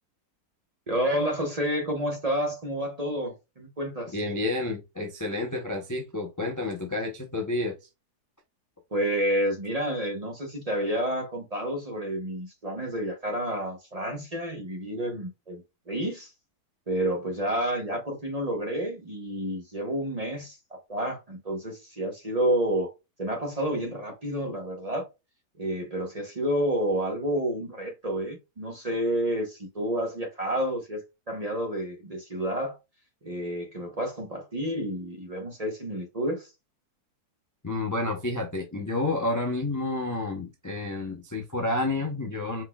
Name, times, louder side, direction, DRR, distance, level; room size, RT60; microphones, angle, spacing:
voice 1, 0.9-4.2 8.9-16.3 16.9-22.9 23.2-25.1 25.6-32.8 33.2-36.5, right 1 dB, 30° right, 0.7 m, -30 dB
voice 2, 4.1-7.8 37.6-42.6, left 2 dB, 25° left, 0.4 m, -30 dB
4.4 x 4.0 x 2.3 m
omnidirectional pair, 1.7 m